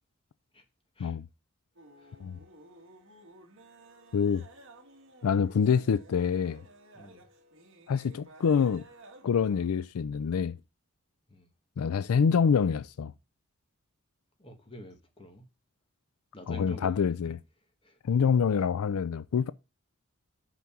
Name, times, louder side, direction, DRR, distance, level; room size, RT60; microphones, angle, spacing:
sound 1, 1.8-9.7, right 1 dB, 60° right, 2.0 m, -54 dB
voice 1, 4.1-4.4 5.2-6.6 7.9-8.8 9.2-10.6 11.8-13.1 16.5-17.4 18.1-19.5, left 6 dB, 85° left, 0.4 m, -26 dB
voice 2, 6.9-7.3 11.3-11.5 14.4-15.5 16.3-17.4 17.8-18.0 18.6-18.7, equal, 25° left, 1.8 m, -48 dB
6.1 x 5.9 x 6.8 m
head